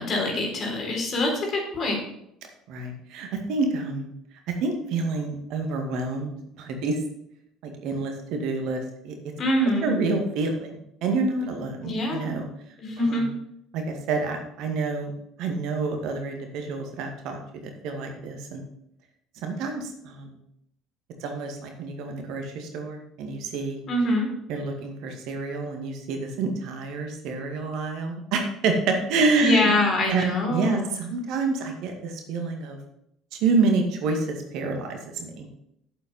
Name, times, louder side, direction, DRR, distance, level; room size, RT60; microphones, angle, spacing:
voice 1, 0.0-2.0 9.4-10.0 11.8-12.3 12.8-13.3 23.9-24.3 29.4-30.9, left 1 dB, 45° left, 1 dB, 3.8 m, -24 dB
voice 2, 2.7-4.1 4.6-6.3 6.6-7.0 7.6-9.1 9.8-12.5 13.0-13.3 13.7-15.1 15.4-18.6 19.4-20.4 21.2-23.8 24.5-29.7 30.1-30.2 30.5-32.8 33.3-35.5, right 3 dB, 60° right, 4 dB, 2.0 m, -28 dB
8.6 x 7.4 x 5.5 m, 0.76 s
hypercardioid pair, 60°, 0 cm